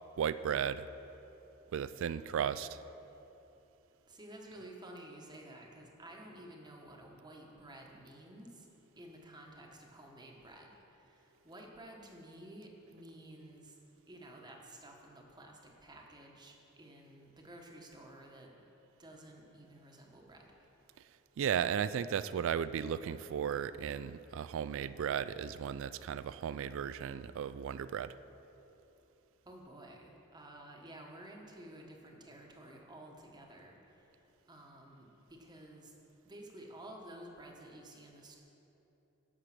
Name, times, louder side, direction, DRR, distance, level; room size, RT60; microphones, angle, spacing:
voice 1, 0.2-0.9 1.7-2.8 21.4-28.1, right 8 dB, 65° right, 15 dB, 0.3 m, -35 dB
voice 2, 4.1-8.6 9.0-10.8 11.4-13.7 14.1-18.5 19.0-20.5 29.5-33.8 34.5-35.9 36.2-38.4, right 1 dB, 20° right, 0 dB, 1.2 m, -52 dB
11.0 x 6.7 x 5.9 m, 3.0 s
head